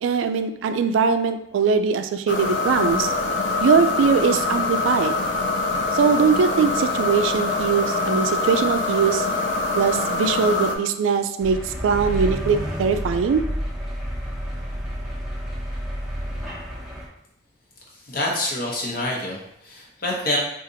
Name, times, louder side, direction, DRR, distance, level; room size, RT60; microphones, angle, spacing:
voice 1, 0.0-3.1 3.6-5.2 5.9-9.3 9.8-13.4, right 6 dB, 90° right, 9 dB, 0.3 m, -21 dB
sound 1, 2.3-10.8, left 3 dB, 70° left, 0.4 m, -24 dB
sound 2, 11.4-17.1, equal, 5° right, 0.7 m, -30 dB
voice 2, 17.9-20.4, left 1 dB, 50° left, -3 dB, 0.8 m, -27 dB
3.9 x 2.5 x 2.7 m, 0.76 s
head